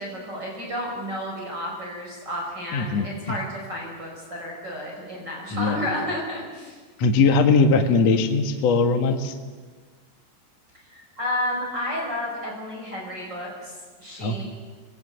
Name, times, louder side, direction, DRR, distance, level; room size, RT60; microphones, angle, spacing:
voice 1, 0.0-6.8 10.9-13.7 14.0-14.4, left 1 dB, 25° right, -3 dB, 5.8 m, -31 dB
voice 2, 2.7-3.4 5.5-5.8 7.0-9.3 14.2-14.4, left 4 dB, 55° left, 5 dB, 2.0 m, -20 dB
27.5 x 21.0 x 8.1 m, 1.5 s
omnidirectional pair, 4.9 m